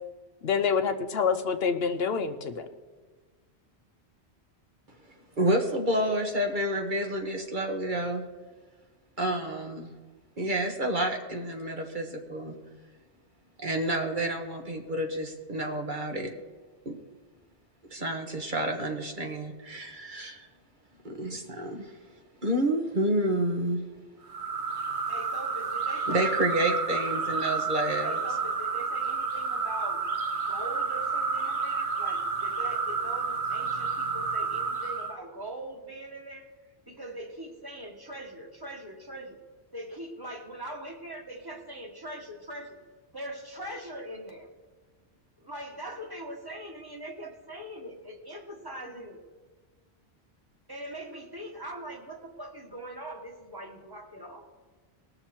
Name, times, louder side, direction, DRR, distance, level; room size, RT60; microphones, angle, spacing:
voice 1, 0.4-2.7, left 6 dB, 65° left, 8 dB, 1.0 m, -27 dB
voice 2, 5.4-8.2 9.2-9.9 10.4-12.6 13.6-16.3 16.8-17.0 17.9-20.5 21.0-22.0 22.4-23.8 26.1-28.2 31.4-31.5, right 1 dB, 50° right, 2 dB, 1.4 m, -29 dB
sound 1, 24.3-35.2, right 5 dB, 80° right, 1.2 m, -30 dB
voice 3, 25.1-26.3 28.0-30.0 30.4-36.5 36.8-39.4 39.7-42.8 43.1-44.5 45.4-49.2 50.7-54.5, right 1 dB, 20° right, 1 dB, 1.7 m, -41 dB
19.5 x 6.8 x 4.4 m, 1.4 s
omnidirectional pair, 1.1 m